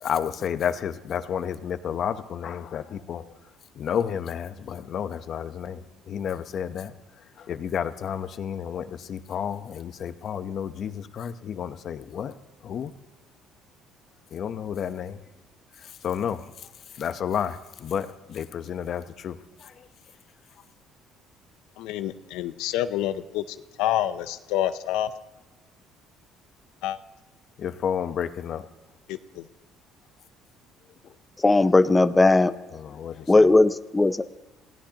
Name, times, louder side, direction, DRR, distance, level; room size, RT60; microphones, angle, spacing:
voice 1, 0.0-3.3 3.7-6.9 7.4-12.3 12.6-12.9 14.3-15.2 15.8-16.7 17.0-19.9 27.6-28.7 31.0-31.1 32.7-33.5, left 8 dB, 50° left, 10 dB, 0.9 m, -31 dB
voice 2, 21.8-25.1 26.8-27.0 29.1-29.4, left 12 dB, 85° left, 11 dB, 0.6 m, -28 dB
voice 3, 31.4-32.5 33.3-34.3, left 2 dB, 15° left, 11 dB, 0.5 m, -18 dB
27.0 x 16.5 x 2.9 m, 1.1 s
cardioid pair, 105°, 0 cm